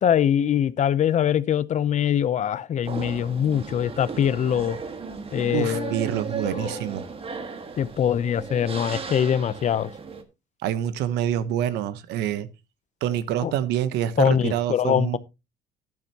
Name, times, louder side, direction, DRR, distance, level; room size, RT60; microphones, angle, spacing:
voice 1, 0.0-4.8 5.3-6.8 7.8-9.9 13.4-13.5 14.2-15.2, left 9 dB, 45° left, 0.6 m, -23 dB
sound 1, 2.8-10.2, right 5 dB, 35° right, 1.7 m, -35 dB
voice 2, 5.5-7.1 10.6-12.5 13.0-15.2, right 10 dB, 85° right, 1.0 m, -26 dB
11.5 x 9.6 x 2.9 m
cardioid pair, 110°, 17 cm